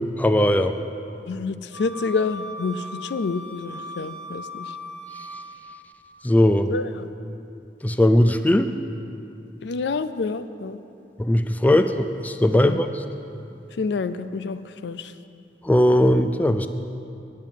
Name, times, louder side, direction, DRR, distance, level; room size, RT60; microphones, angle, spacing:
voice 1, 0.2-0.7 6.2-6.7 7.8-8.7 11.2-13.0 15.6-16.7, left 1 dB, 10° left, 8 dB, 0.3 m, -19 dB
voice 2, 1.3-4.8 6.7-7.1 9.6-10.8 12.5-12.8 13.8-15.1, left 4 dB, 70° left, 12 dB, 0.4 m, -28 dB
Wind instrument woodwind instrument, 1.7-5.8, left 1 dB, 40° right, 1.0 m, -38 dB
9.4 x 7.5 x 8.9 m, 2.7 s
head